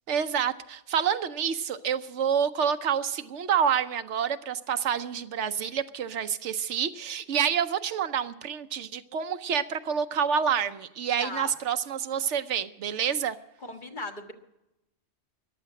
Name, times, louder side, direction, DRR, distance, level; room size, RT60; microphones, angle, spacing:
voice 1, 0.1-13.4, right 8 dB, 75° right, 11 dB, 1.0 m, -28 dB
voice 2, 11.2-11.5 13.6-14.3, left 3 dB, 40° left, 3 dB, 1.5 m, -37 dB
14.5 x 11.0 x 7.5 m, 0.92 s
omnidirectional pair, 1.2 m